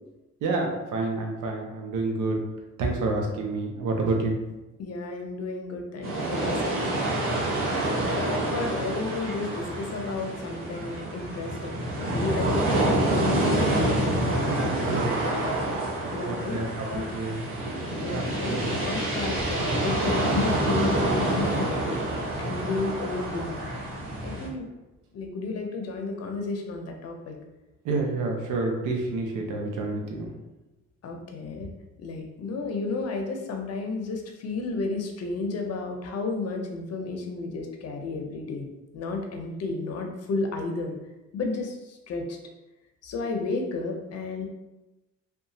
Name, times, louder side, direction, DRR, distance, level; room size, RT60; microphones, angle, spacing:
voice 1, 0.4-2.4 2.8-4.4 14.5-15.2 16.0-17.4 18.1-18.7 27.8-30.3, right 3 dB, 85° right, 1 dB, 0.7 m, -29 dB
voice 2, 4.8-6.9 7.7-13.9 16.1-17.1 18.0-22.0 22.4-23.6 24.2-24.6 25.1-27.4 31.0-31.7 32.0-38.7 38.9-40.9 41.3-42.4 43.0-44.5, left 3 dB, 55° left, 3 dB, 0.6 m, -32 dB
sound 1, 6.0-24.5, right 1 dB, 45° right, 1.0 m, -27 dB
2.8 x 2.3 x 2.7 m, 1.0 s
cardioid pair, 90°, 30 cm